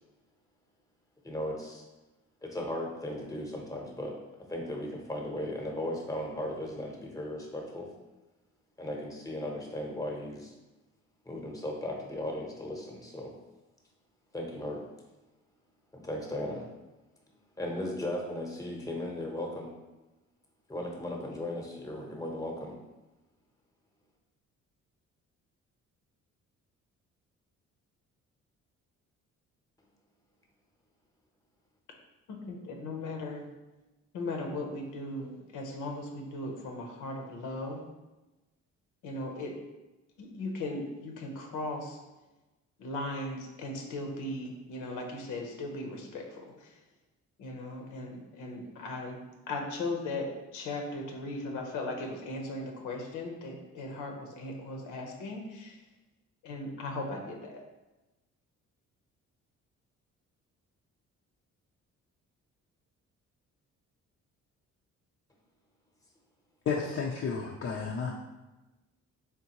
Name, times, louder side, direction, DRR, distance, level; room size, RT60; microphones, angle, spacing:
voice 1, 1.2-1.8 2.4-4.2 4.5-7.9 8.8-10.5 11.2-13.3 14.3-14.8 15.9-16.7 17.6-19.7 20.7-22.7, left 1 dB, 10° left, 0 dB, 0.9 m, -36 dB
voice 2, 32.5-33.4 34.1-37.8 39.0-39.5 40.2-42.0 42.8-46.7 47.4-49.2 49.5-50.3 50.5-55.8 56.4-57.6, left 2 dB, 85° left, 2 dB, 0.8 m, -37 dB
voice 3, 66.7-68.1, left 5 dB, 45° left, -1 dB, 0.5 m, -32 dB
3.7 x 3.5 x 2.9 m, 1.1 s
cardioid pair, 90°, 30 cm